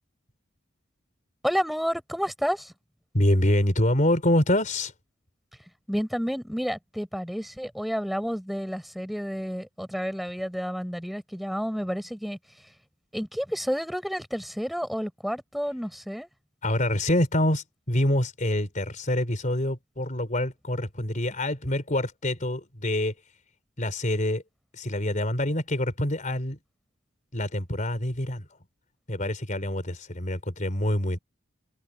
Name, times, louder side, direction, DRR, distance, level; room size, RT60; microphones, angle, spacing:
voice 1, 1.4-2.7 5.9-12.4 13.1-16.3, equal, ahead, 5.1 m, -30 dB
voice 2, 3.1-4.9 16.6-23.1 23.8-24.4 24.7-26.6 27.3-28.4 29.1-31.2, left 1 dB, 40° left, 4.2 m, -26 dB
head